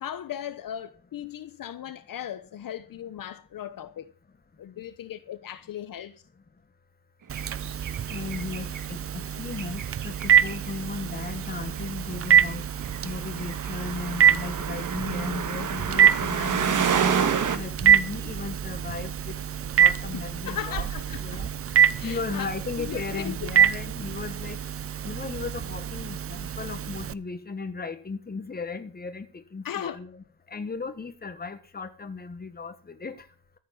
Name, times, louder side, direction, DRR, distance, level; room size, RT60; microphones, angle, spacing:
voice 1, 0.0-4.1 4.6-6.2 20.1-21.5 22.0-22.5 22.8-23.5 29.6-30.0, left 10 dB, 60° left, 1.0 m, -37 dB
Telephone, 7.3-27.1, right 9 dB, 35° right, 0.6 m, -25 dB
sound 1, 7.3-8.8 9.5-10.9 11.2-17.6, right 7 dB, 55° right, 1.7 m, -29 dB
voice 2, 8.1-12.6 13.0-17.1 17.5-19.4 19.8-20.9 21.2-21.5 22.0-24.6 25.0-30.2 30.5-33.2, left 4 dB, 25° left, 1.6 m, -36 dB
14.0 x 7.5 x 7.2 m
cardioid pair, 125°, 37 cm